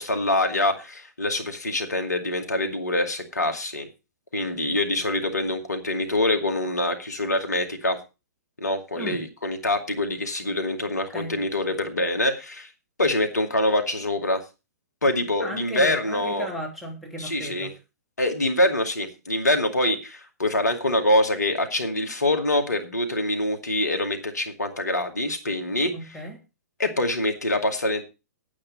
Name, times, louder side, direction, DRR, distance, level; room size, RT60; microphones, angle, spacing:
voice 1, 0.0-3.9 4.3-8.0 8.6-12.7 13.0-14.4 15.0-16.5 17.2-17.7 18.2-25.9 26.8-28.0, left 1 dB, 80° left, 5 dB, 2.3 m, -25 dB
voice 2, 15.4-17.7 25.9-26.4, equal, ahead, -1 dB, 3.0 m, -35 dB
8.9 x 8.8 x 5.3 m, 0.29 s
figure-of-eight pair, 115°, 9 cm